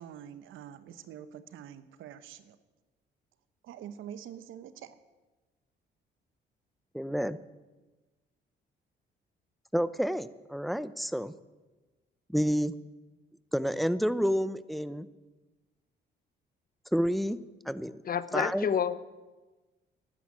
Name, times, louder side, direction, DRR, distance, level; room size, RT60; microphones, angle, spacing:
voice 1, 0.0-2.6 3.6-5.0, right 9 dB, 85° right, 13 dB, 1.0 m, -46 dB
voice 2, 6.9-7.4 9.7-11.3 12.3-12.7 13.5-15.1 16.9-17.4 17.7-18.0 18.3-18.7, equal, ahead, 15 dB, 0.7 m, -29 dB
voice 3, 18.0-19.0, left 7 dB, 45° left, 14 dB, 0.9 m, -29 dB
12.0 x 10.0 x 9.6 m, 1.2 s
cardioid pair, 90°, 20 cm